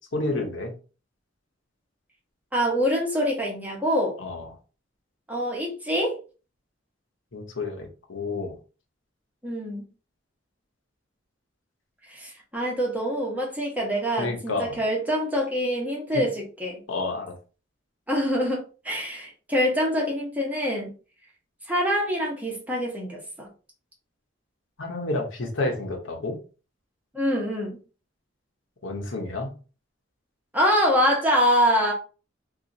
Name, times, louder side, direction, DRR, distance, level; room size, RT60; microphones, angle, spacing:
voice 1, 0.1-0.7 4.2-4.5 7.3-8.6 14.2-14.8 16.1-16.2 16.9-17.3 24.8-26.4 28.8-29.5, left 2 dB, 70° left, 2 dB, 0.9 m, -30 dB
voice 2, 2.5-4.2 5.3-6.2 9.4-9.9 12.1-16.8 18.1-20.9 21.7-23.5 27.1-27.8 30.5-31.9, equal, 10° right, -2 dB, 1.0 m, -25 dB
2.9 x 2.4 x 3.8 m, 0.35 s
head